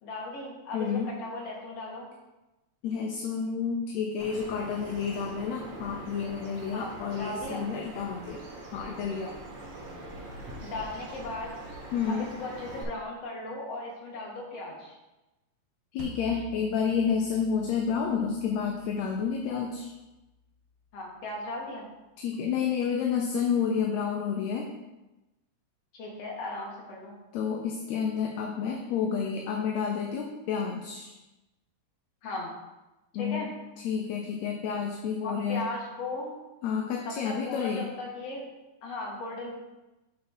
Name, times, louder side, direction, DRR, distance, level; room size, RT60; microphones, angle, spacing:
voice 1, 0.0-2.1 6.7-7.6 10.6-11.6 12.1-15.0 20.9-21.9 25.9-27.2 32.2-32.5 33.1-33.5 35.2-36.3 37.1-38.4 38.8-39.5, left 2 dB, 60° left, -2 dB, 2.5 m, -37 dB
voice 2, 0.7-1.1 2.8-8.4 8.7-9.4 11.9-12.3 15.9-19.9 22.2-24.7 27.3-31.1 33.1-33.5 33.8-35.6 36.6-37.9, left 6 dB, 75° left, 1 dB, 1.9 m, -30 dB
Bird vocalization bird call bird song, 4.2-12.8, right 1 dB, 55° right, 2.2 m, -43 dB
sound 1, 16.0-21.1, right 6 dB, 75° right, 1.6 m, -49 dB
8.3 x 4.1 x 4.8 m, 1.0 s
omnidirectional pair, 3.5 m